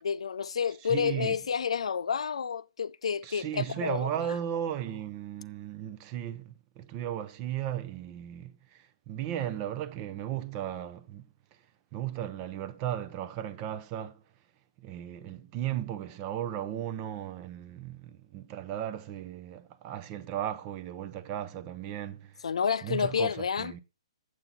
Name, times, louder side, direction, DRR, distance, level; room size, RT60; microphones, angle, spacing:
voice 1, 0.0-4.1 22.4-23.7, left 7 dB, 85° left, 0.5 m, -30 dB
voice 2, 0.8-1.4 3.2-11.2 11.9-14.2 14.8-22.4 22.8-23.8, right 11 dB, 20° right, 0.5 m, -36 dB
7.9 x 7.3 x 4.0 m
hypercardioid pair, 175°, 3 cm